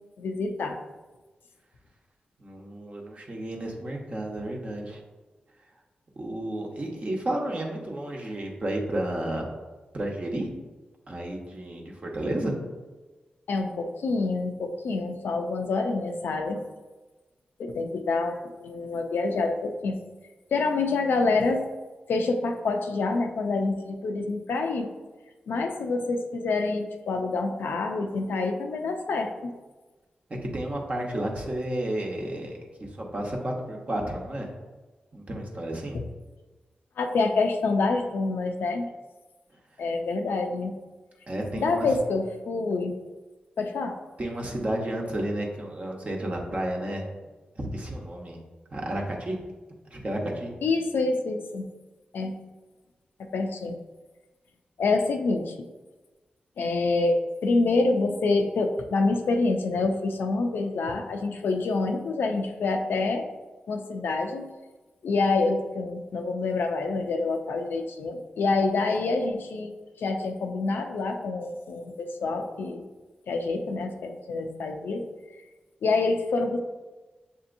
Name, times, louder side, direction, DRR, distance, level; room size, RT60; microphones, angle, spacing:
voice 1, 0.2-0.8 13.5-16.6 17.6-20.0 20.5-21.7 22.1-24.9 25.5-29.5 35.9-36.1 37.0-38.9 39.8-40.7 41.5-42.9 43.6-44.0 50.6-51.7 52.1-52.3 53.2-53.8 54.8-55.6 56.6-63.3 63.7-64.5 65.0-72.9 73.3-75.0 75.8-76.6, left 3 dB, 85° left, 4 dB, 0.4 m, -27 dB
voice 2, 2.4-5.0 6.2-9.5 9.9-10.5 11.1-12.6 30.4-34.5 35.1-36.0 41.3-41.9 44.2-47.0 47.6-48.4 48.7-49.4 49.9-50.5, right 1 dB, 40° right, -1 dB, 1.0 m, -32 dB
6.8 x 2.7 x 2.6 m, 1.2 s
cardioid pair, 65°, 3 cm